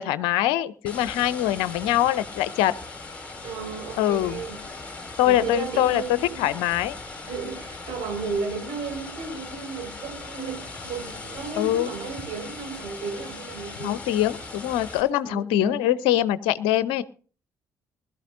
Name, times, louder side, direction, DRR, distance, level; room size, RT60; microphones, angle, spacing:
voice 1, 0.0-2.7 4.0-4.4 5.2-6.0 6.4-7.0 11.6-11.9 13.8-17.0, left 13 dB, 65° left, 0.7 m, -23 dB
sound 1, 0.9-15.0, left 3 dB, 15° left, 5.0 m, -39 dB
voice 2, 3.4-4.9 5.2-6.5 7.3-14.1 15.2-16.0, right 5 dB, 60° right, 5.2 m, -34 dB
20.5 x 12.5 x 2.6 m
figure-of-eight pair, 45°, 9 cm